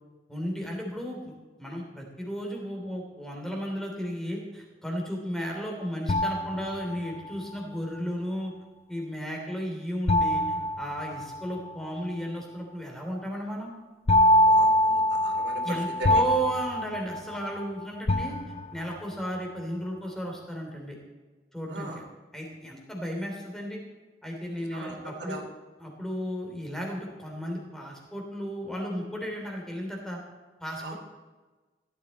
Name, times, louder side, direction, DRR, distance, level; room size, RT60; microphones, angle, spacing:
voice 1, 0.3-1.3 1.6-8.5 8.9-10.4 10.8-13.7 15.6-18.4 18.7-21.0 21.5-22.0 22.3-23.8 24.2-25.4 25.8-30.2 30.6-30.9, equal, 5° left, 0 dB, 3.2 m, -34 dB
sound 1, 6.1-7.3 10.1-11.7 14.1-17.7 18.1-19.0, left 1 dB, 35° left, 0.5 m, -24 dB
voice 2, 14.4-16.2 21.7-22.0 24.7-25.4 30.8-30.9, right 2 dB, 85° right, 2 dB, 2.8 m, -38 dB
16.5 x 12.0 x 4.2 m, 1.3 s
head